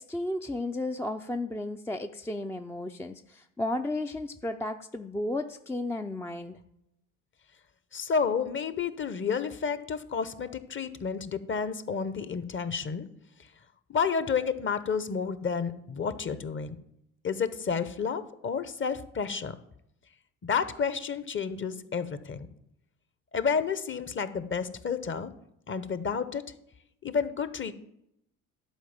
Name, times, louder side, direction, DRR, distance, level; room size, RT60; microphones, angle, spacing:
voice 1, 0.0-6.6, left 2 dB, 5° left, 5 dB, 0.5 m, -33 dB
voice 2, 7.9-13.1 13.9-16.7 17.2-19.5 20.4-22.5 23.3-25.3 25.7-26.4 27.0-27.8, left 6 dB, 30° left, 13 dB, 0.9 m, -30 dB
11.5 x 4.8 x 7.3 m, 0.80 s
hypercardioid pair, 60°, 40 cm